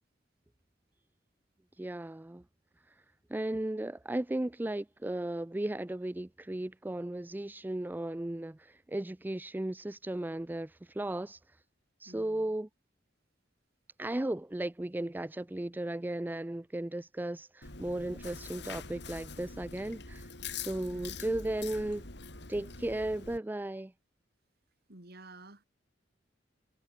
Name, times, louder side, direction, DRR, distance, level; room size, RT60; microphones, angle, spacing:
voice 1, 1.8-2.4 2.9-3.0 3.3-11.4 12.0-12.7 14.0-20.3 20.6-22.1 22.5-23.9, right 1 dB, 10° right, 0.4 m, -35 dB
voice 2, 12.1-12.5 20.9-21.1 24.9-25.6, right 2 dB, 60° right, 4.3 m, -51 dB
Chewing mastication, 17.6-23.4, left 5 dB, 65° left, 6.2 m, -44 dB
head